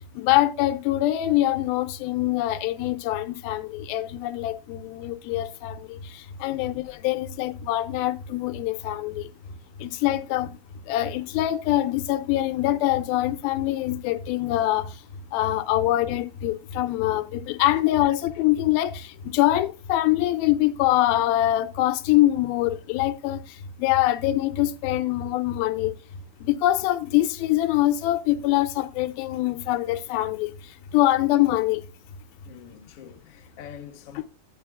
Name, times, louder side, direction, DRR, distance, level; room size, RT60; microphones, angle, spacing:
voice 1, 0.2-9.3 9.8-10.5 10.9-14.9 15.3-23.4 23.8-25.9 26.4-30.5 30.9-31.8, left 14 dB, 80° left, 2.4 m, -24 dB
voice 2, 32.4-34.3, left 8 dB, 65° left, 1.5 m, -45 dB
11.5 x 8.1 x 2.3 m
omnidirectional pair, 4.3 m